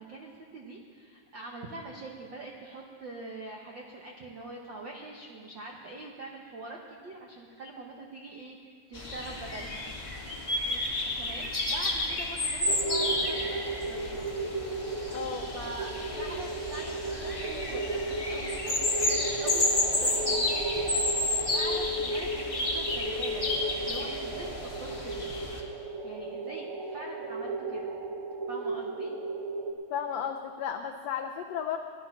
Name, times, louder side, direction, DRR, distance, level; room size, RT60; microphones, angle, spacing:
voice 1, 0.0-9.8 11.2-13.6 13.9-14.3 15.5-20.9 21.4-23.4 23.9-25.2 26.0-27.8 28.5-29.1, right 2 dB, 75° right, 0 dB, 1.0 m, -44 dB
sound 1, 8.9-25.6, left 2 dB, 25° left, 1.8 m, -31 dB
sound 2, 12.7-29.7, right 2 dB, 60° right, 1.5 m, -34 dB
voice 2, 15.1-15.5 29.9-31.8, left 8 dB, 90° left, 4 dB, 1.4 m, -34 dB
16.5 x 12.0 x 5.9 m, 2.1 s
omnidirectional pair, 3.7 m